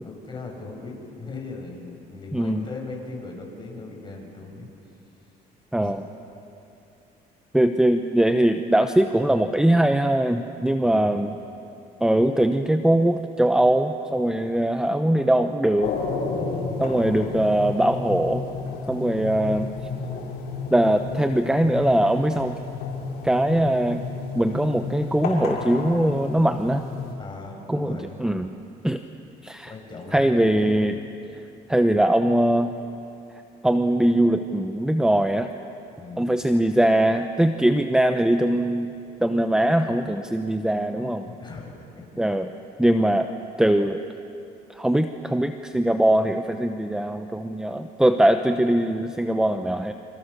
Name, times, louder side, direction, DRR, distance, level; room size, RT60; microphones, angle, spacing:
voice 1, 0.0-4.7 5.8-6.0 10.8-11.2 16.3-16.7 27.2-28.2 29.6-31.0 36.0-36.3 41.3-42.2, left 3 dB, 25° left, 1 dB, 6.8 m, -38 dB
voice 2, 2.3-2.6 5.7-6.1 7.5-11.4 12.0-15.9 16.8-18.5 18.9-19.7 20.7-22.6 23.2-24.0 24.3-26.8 27.7-28.5 28.8-29.0 29.4-29.7 30.1-30.9 31.7-32.7 33.6-35.5 36.2-38.9 39.2-41.3 42.2-42.5 42.8-43.3 43.6-44.0 44.7-49.9, right 1 dB, 5° right, 7 dB, 0.9 m, -21 dB
sound 1, 15.8-27.1, left 4 dB, 75° left, 5.3 m, -32 dB
29.5 x 26.5 x 6.8 m, 2.7 s
cardioid pair, 110°, 17 cm